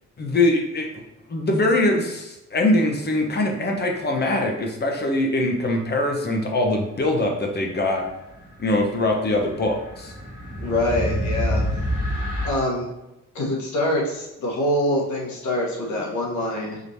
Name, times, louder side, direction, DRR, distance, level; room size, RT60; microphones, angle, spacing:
voice 1, 0.2-0.9 1.3-8.0 8.6-10.1, left 2 dB, 35° left, 2 dB, 0.9 m, -22 dB
sound 1, 8.4-12.5, equal, 25° right, 1.4 m, -27 dB
voice 2, 10.6-11.6 12.4-12.9 13.3-16.8, left 1 dB, 70° left, -3 dB, 1.3 m, -25 dB
4.9 x 3.1 x 2.7 m, 0.96 s
cardioid pair, 90°, 30 cm